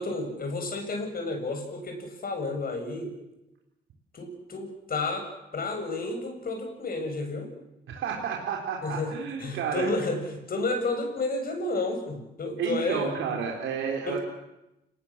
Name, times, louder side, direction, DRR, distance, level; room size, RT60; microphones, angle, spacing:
voice 1, 0.0-3.2 4.1-7.5 8.8-9.1 9.4-13.4 14.1-14.2, left 2 dB, 45° left, 4 dB, 7.6 m, -31 dB
voice 2, 7.9-9.9 12.6-14.2, right 7 dB, 80° right, 0 dB, 4.0 m, -31 dB
29.5 x 19.5 x 7.5 m, 0.91 s
cardioid pair, 90°, 20 cm